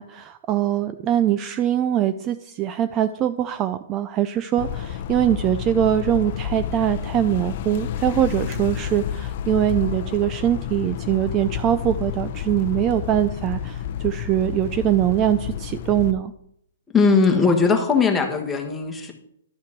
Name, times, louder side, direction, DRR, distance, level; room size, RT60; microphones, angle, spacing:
voice 1, 0.0-16.3, right 11 dB, 20° right, 11 dB, 0.4 m, -22 dB
sound 1, 4.6-16.1, left 9 dB, 45° left, 0.7 m, -30 dB
voice 2, 16.9-19.1, left 4 dB, 10° left, 2 dB, 1.5 m, -19 dB
12.0 x 5.8 x 6.0 m, 0.74 s
hypercardioid pair, 155°, 0 cm